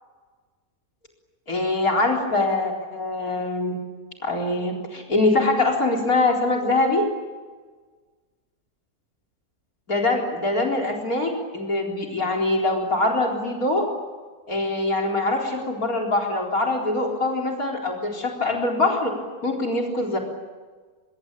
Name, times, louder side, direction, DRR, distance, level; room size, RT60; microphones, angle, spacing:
voice 1, 1.5-3.8 4.2-7.0 9.9-13.9 14.5-19.1 19.4-20.2, left 2 dB, 65° left, 4 dB, 4.6 m, -23 dB
25.0 x 23.5 x 8.9 m, 1.4 s
omnidirectional pair, 1.7 m